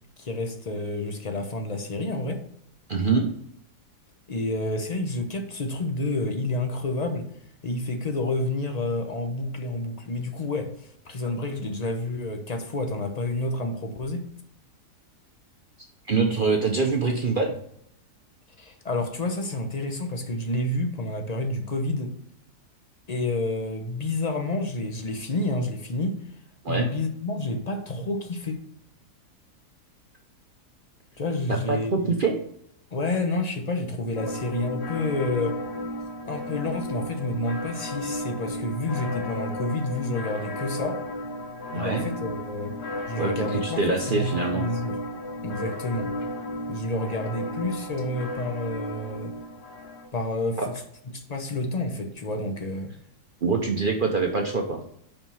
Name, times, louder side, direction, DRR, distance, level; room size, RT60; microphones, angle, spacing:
voice 1, 0.2-2.4 4.3-7.3 7.6-10.7 11.0-14.3 18.6-22.1 23.1-26.2 26.7-28.6 31.2-32.2 32.9-35.6 36.3-41.0 41.7-42.7 43.1-45.0 45.4-46.1 46.7-49.3 50.1-50.7 51.3-52.9, left 2 dB, 45° left, 5 dB, 0.5 m, -29 dB
voice 2, 2.9-3.3 16.1-17.6 26.6-26.9 31.5-32.3 41.7-42.1 43.2-44.7 50.6-50.7 53.4-54.8, right 4 dB, 50° right, 2 dB, 0.6 m, -24 dB
sound 1, 34.2-50.1, left 1 dB, 75° left, 1.6 m, -34 dB
5.4 x 4.6 x 5.5 m, 0.71 s
omnidirectional pair, 1.7 m